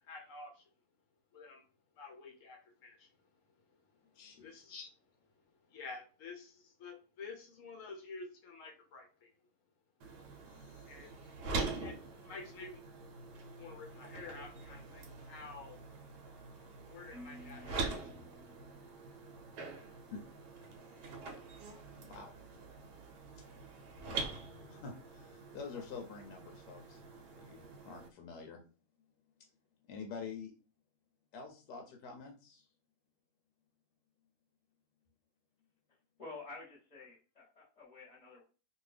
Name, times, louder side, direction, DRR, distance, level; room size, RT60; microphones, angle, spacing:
voice 1, 0.1-0.7 1.3-1.6 2.0-3.1 4.4-4.9 5.7-9.3 10.9-11.3 11.8-12.8 13.6-15.8 16.9-18.4, left 4 dB, 65° left, 2 dB, 0.9 m, -50 dB
voice 2, 4.1-4.5 10.5-11.1 20.1-20.2 20.9-21.1 22.0-22.3 23.3-23.4 24.1-24.3 24.7-27.0 27.4-28.6 29.9-30.5 31.3-32.7, left 5 dB, 85° left, 2 dB, 1.2 m, -47 dB
sound 1, 10.0-28.1, right 3 dB, 75° right, 1.2 m, -44 dB
Marimba xylophone, 17.1-19.3, left 1 dB, 15° left, 0.6 m, -55 dB
voice 3, 36.2-38.4, left 3 dB, 30° left, -6 dB, 0.9 m, -50 dB
2.7 x 2.6 x 3.2 m, 0.36 s
omnidirectional pair, 1.8 m